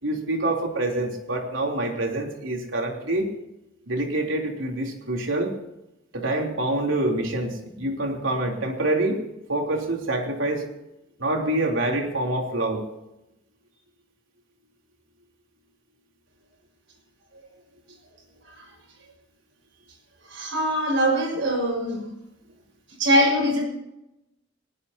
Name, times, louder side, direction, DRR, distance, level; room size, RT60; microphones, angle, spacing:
voice 1, 0.0-3.3 3.9-5.5 6.1-9.2 9.5-10.6 11.2-12.8, right 1 dB, 85° right, 1 dB, 3.5 m, -26 dB
voice 2, 20.3-22.1 23.0-23.6, equal, 70° right, 1 dB, 6.0 m, -22 dB
19.5 x 19.0 x 2.9 m, 0.91 s
head